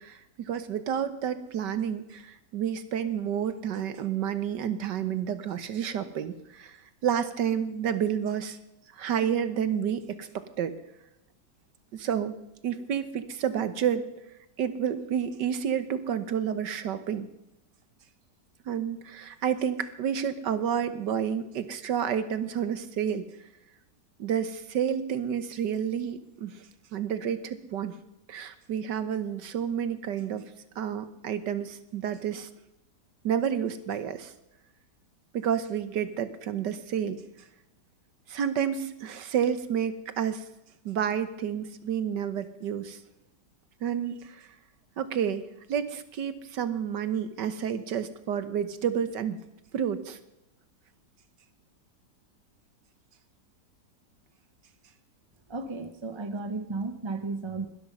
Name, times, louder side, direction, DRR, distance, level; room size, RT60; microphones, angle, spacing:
voice 1, 0.0-8.6 8.9-10.7 11.9-12.4 12.6-14.0 14.6-17.3 18.6-23.3 24.2-26.7 26.9-27.9 28.3-30.4 30.7-32.5 33.2-34.3 35.3-37.2 38.3-40.4 40.8-43.0 43.8-44.5 45.0-45.4 45.7-49.4 49.7-50.2, right 8 dB, 75° right, 12 dB, 1.7 m, -30 dB
voice 2, 55.5-57.7, right 3 dB, 20° right, 9 dB, 1.0 m, -34 dB
21.5 x 12.5 x 5.4 m, 0.88 s
omnidirectional pair, 1.9 m